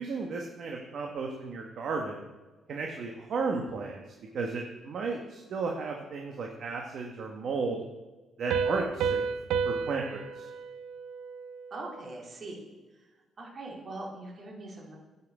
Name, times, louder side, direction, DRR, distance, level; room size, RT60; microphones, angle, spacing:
voice 1, 0.0-2.3 2.7-4.0 4.3-7.8 8.4-9.3 9.6-10.5, right 4 dB, 60° right, 1 dB, 1.1 m, -34 dB
Piano, 8.5-11.9, right 6 dB, 85° right, 0.4 m, -32 dB
voice 2, 11.7-12.6 13.4-14.9, right 2 dB, 45° right, -2 dB, 3.0 m, -41 dB
9.3 x 5.6 x 4.8 m, 1.2 s
cardioid pair, 90°, 0 cm